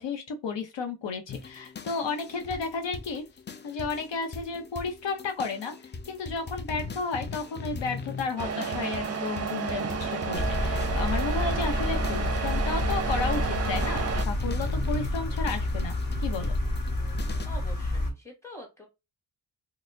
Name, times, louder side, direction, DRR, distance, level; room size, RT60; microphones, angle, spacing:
voice 1, 0.0-3.2 3.6-15.9 16.2-16.5, left 4 dB, 75° left, 0.7 m, -33 dB
sound 1, 1.3-17.5, left 4 dB, 25° left, 0.3 m, -40 dB
Truck, 8.4-14.2, right 6 dB, 35° right, 0.5 m, -31 dB
sound 2, 10.3-18.1, left 1 dB, 50° left, 1.1 m, -29 dB
voice 2, 17.4-18.9, left 1 dB, 5° left, 1.5 m, -45 dB
4.1 x 2.1 x 2.5 m
wide cardioid pair, 95°, 43 cm